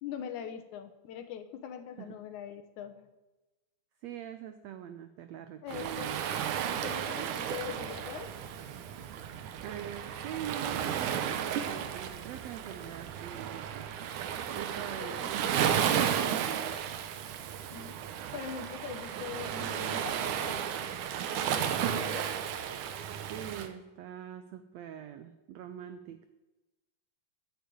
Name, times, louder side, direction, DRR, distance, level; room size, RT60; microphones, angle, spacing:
voice 1, 0.0-3.1 5.6-6.1 6.8-8.3 14.5-16.1 17.7-18.0 18.3-21.0 21.3-22.3, left 8 dB, 70° left, 8 dB, 2.1 m, -43 dB
voice 2, 4.0-6.2 9.6-13.9 14.5-17.0 23.3-26.3, right 10 dB, 90° right, 9 dB, 1.5 m, -43 dB
Waves surf, 5.7-23.7, right 9 dB, 75° right, 2.3 m, -33 dB
11.5 x 6.9 x 9.2 m, 1.1 s
omnidirectional pair, 3.8 m